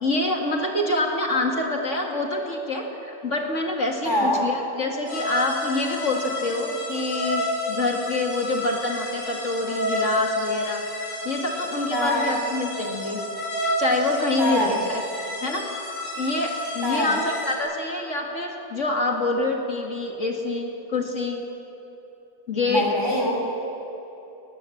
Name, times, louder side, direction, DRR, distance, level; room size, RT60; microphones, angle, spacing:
voice 1, 0.0-13.2 13.8-15.0 15.4-15.6 16.2-21.4 22.5-22.9, left 2 dB, 45° left, 1 dB, 2.3 m, -26 dB
voice 2, 4.0-4.4 11.9-12.2 14.4-14.7 16.8-17.1 22.7-23.3, left 1 dB, 15° right, -2 dB, 4.2 m, -24 dB
sound 1, 5.1-17.6, left 1 dB, 80° left, 5.0 m, -30 dB
21.0 x 19.0 x 7.2 m, 3.0 s
omnidirectional pair, 1.8 m